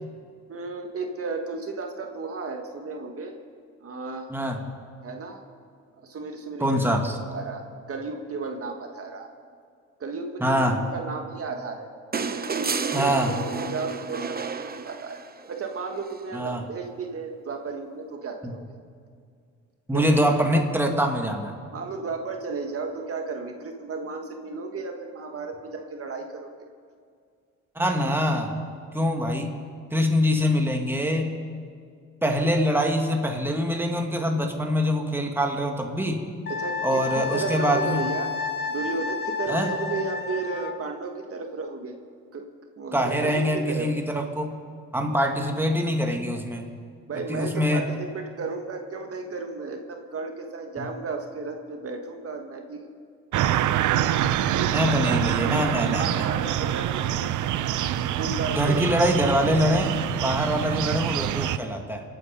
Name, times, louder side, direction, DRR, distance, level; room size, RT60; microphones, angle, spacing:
voice 1, 0.5-3.4 3.8-4.3 5.0-5.4 6.0-6.8 7.3-9.3 10.0-11.9 12.1-15.2 15.5-18.6 19.9-20.1 21.7-26.5 32.4-32.5 36.5-38.3 38.7-42.0 42.3-42.5 42.8-43.9 47.1-52.9 53.9-57.3 58.1-58.9, right 4 dB, 50° right, 4 dB, 1.7 m, -34 dB
voice 2, 6.6-7.2 10.4-10.8 12.9-13.4 16.3-16.6 18.4-18.5 19.9-21.5 27.8-28.5 28.9-29.5 29.9-31.3 32.2-36.2 36.8-38.0 39.5-39.7 42.9-44.5 44.9-46.7 47.3-47.8 50.8-50.9 54.7-56.2 58.5-62.0, equal, 5° right, 2 dB, 2.1 m, -24 dB
sound 1, 12.1-15.5 17.0-17.1, right 5 dB, 30° right, 0.9 m, -31 dB
Wind instrument woodwind instrument, 36.5-40.8, left 5 dB, 35° left, 1.1 m, -30 dB
sound 2, 53.3-61.6, right 12 dB, 75° right, 0.7 m, -25 dB
27.0 x 9.3 x 5.4 m, 2.2 s
cardioid pair, 90°, 30 cm